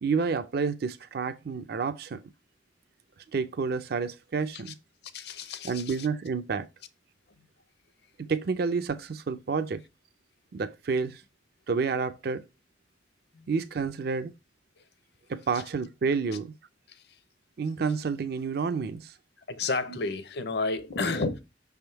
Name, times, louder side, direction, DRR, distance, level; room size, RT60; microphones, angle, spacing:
voice 1, 0.0-2.2 3.3-4.7 5.6-6.7 8.2-9.8 10.5-11.2 11.7-12.4 13.5-14.3 15.3-16.5 17.6-19.1, right 5 dB, 55° right, 0.4 m, -29 dB
voice 2, 5.1-6.1 13.3-13.5 16.9-17.0 19.5-21.4, left 3 dB, 60° left, 0.7 m, -31 dB
6.0 x 3.5 x 4.4 m
head